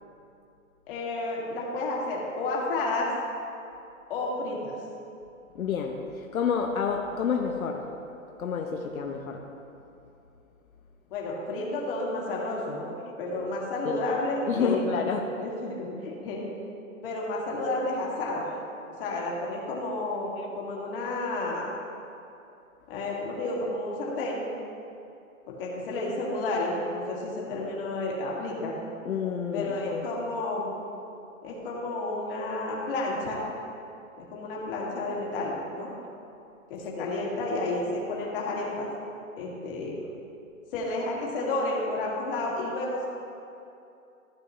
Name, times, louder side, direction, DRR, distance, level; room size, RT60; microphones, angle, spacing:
voice 1, 0.9-3.1 4.1-4.8 11.1-15.1 15.4-16.4 17.0-18.5 19.0-20.3 20.6-21.7 22.9-24.4 25.5-28.7 29.5-30.7 31.4-33.4 34.3-35.9 36.7-38.9 39.4-40.0 40.7-43.1, left 2 dB, 40° left, -3 dB, 2.2 m, -31 dB
voice 2, 5.5-7.9 8.4-9.4 13.8-14.0 14.5-15.3 20.4-20.5 29.0-30.1 37.0-37.1, left 6 dB, 80° left, 2 dB, 1.0 m, -29 dB
14.5 x 7.2 x 3.2 m, 2.7 s
hypercardioid pair, 160°, 41 cm